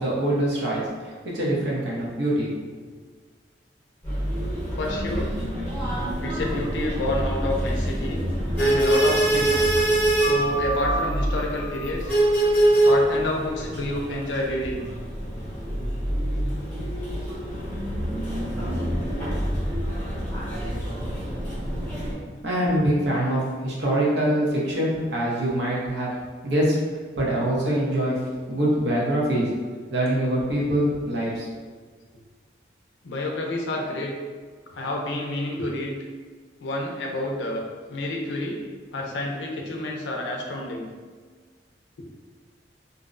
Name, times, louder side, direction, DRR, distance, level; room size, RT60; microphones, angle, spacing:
voice 1, 0.0-2.5 22.4-26.1 26.4-26.8 27.2-28.1 28.5-29.5 29.9-31.5, right 1 dB, 80° right, -5 dB, 0.7 m, -24 dB
sound 1, 4.0-22.1, right 1 dB, 10° left, 0.8 m, -25 dB
voice 2, 4.8-5.3 6.2-8.2 8.6-9.7 10.2-12.1 12.6-14.8 16.8-16.9 33.0-34.1 34.7-35.9 36.6-37.6 37.9-38.6 38.9-40.9, left 1 dB, 80° left, 0 dB, 0.4 m, -29 dB
2.5 x 2.0 x 2.4 m, 1.5 s
head